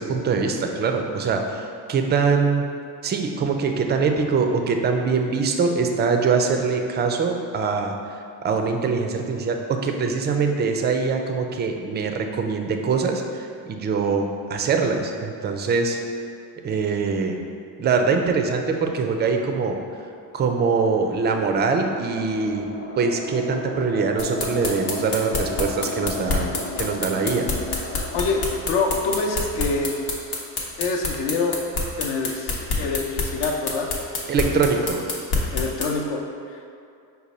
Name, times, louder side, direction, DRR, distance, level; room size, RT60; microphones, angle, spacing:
voice 1, 0.0-2.6 3.0-7.9 8.4-16.0 16.6-17.4 17.8-19.8 20.3-22.7 23.0-26.5 26.8-27.5 34.3-35.0, right 4 dB, 25° right, 4 dB, 0.3 m, -23 dB
sound 1, 20.4-30.9, left 1 dB, 25° left, 0.7 m, -35 dB
sound 2, 24.2-35.9, left 4 dB, 80° left, 1.0 m, -26 dB
voice 2, 28.1-30.0 30.8-31.6 32.0-33.9 35.5-36.2 36.5-36.7, left 3 dB, 60° left, 2 dB, 0.7 m, -25 dB
5.3 x 2.3 x 4.1 m, 2.4 s
supercardioid pair, 70°, 49 cm